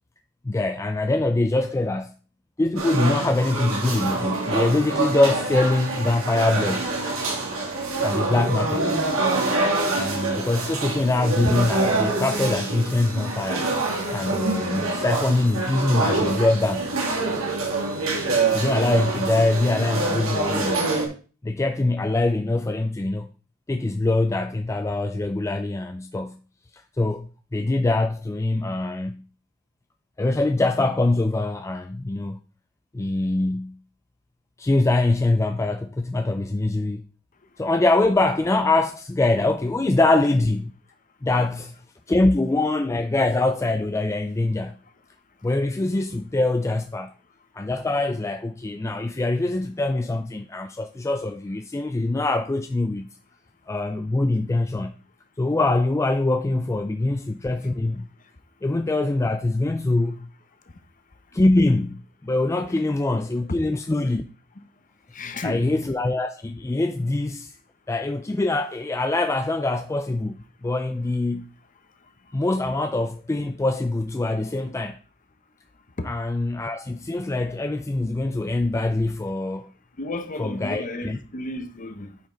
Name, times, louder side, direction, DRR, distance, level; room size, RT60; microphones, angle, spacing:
voice 1, 0.4-2.1 2.6-6.9 8.0-8.9 10.0-13.7 14.1-16.9 18.5-20.9 21.4-23.3 23.7-26.4 26.7-29.2 30.2-32.4 32.9-33.8 34.6-37.0 37.6-40.7 41.2-41.7 42.1-44.8 45.4-47.1 47.5-53.0 53.7-54.9 55.4-58.1 58.6-60.3 61.3-64.2 65.4-67.5 67.9-70.4 70.6-71.5 72.3-75.0 76.0-79.7 80.4-81.2, left 2 dB, 15° left, 0.3 m, -23 dB
sound 1, 2.8-21.1, right 3 dB, 90° right, 2.6 m, -26 dB
voice 2, 65.1-65.7 76.0-76.1 80.0-82.2, left 2 dB, 40° left, 0.9 m, -33 dB
8.8 x 5.2 x 3.8 m
head